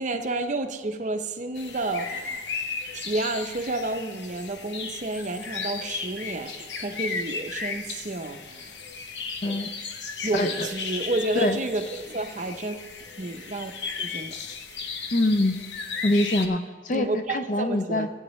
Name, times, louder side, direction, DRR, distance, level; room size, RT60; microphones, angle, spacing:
voice 1, 0.0-2.5 2.9-8.7 9.4-9.6 10.2-12.8 13.2-13.7 14.0-14.4 16.9-18.1, right 2 dB, 40° right, 0.7 m, -30 dB
sound 1, 1.6-16.5, left 5 dB, 70° left, 0.9 m, -35 dB
voice 2, 10.3-10.7 11.4-11.6 15.1-15.6 16.0-18.1, left 1 dB, 45° left, 0.5 m, -24 dB
17.5 x 8.9 x 3.2 m
head